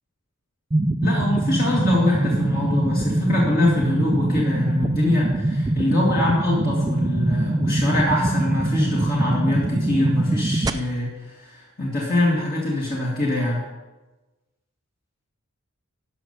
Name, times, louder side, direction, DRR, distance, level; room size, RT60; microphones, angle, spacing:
sound 1, 0.7-10.7, right 1 dB, 15° right, 0.4 m, -23 dB
voice 1, 1.0-13.6, left 1 dB, 45° left, -5 dB, 2.0 m, -24 dB
12.0 x 5.6 x 6.5 m, 1.1 s
head